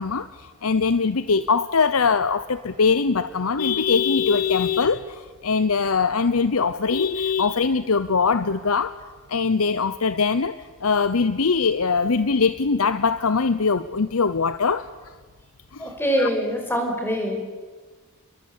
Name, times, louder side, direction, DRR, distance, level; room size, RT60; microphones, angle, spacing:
voice 1, 0.0-8.9 9.3-14.9 15.7-15.9 16.2-16.3, left 5 dB, 75° left, 13 dB, 0.8 m, -22 dB
voice 2, 15.8-17.4, equal, 10° left, 3 dB, 5.7 m, -24 dB
29.5 x 22.0 x 8.8 m, 1.4 s
head